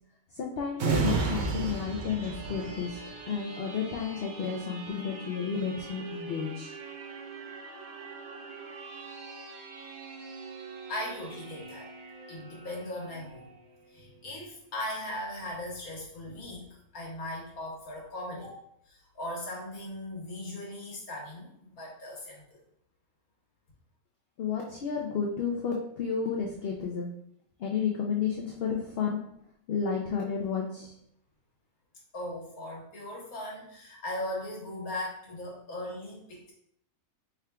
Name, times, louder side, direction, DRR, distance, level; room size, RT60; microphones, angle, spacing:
voice 1, 0.3-3.0 3.3-6.7 24.4-27.1 27.6-29.2 29.7-30.9, left 6 dB, 65° left, 0 dB, 0.6 m, -32 dB
sound 1, 0.8-14.1 14.5-14.7, right 4 dB, 60° right, 0.5 m, -37 dB
voice 2, 10.9-11.9 12.3-13.5 13.9-18.5 18.9-22.6 32.1-36.5, left 1 dB, 90° left, -3 dB, 1.6 m, -38 dB
4.5 x 3.6 x 2.2 m, 0.73 s
omnidirectional pair, 1.5 m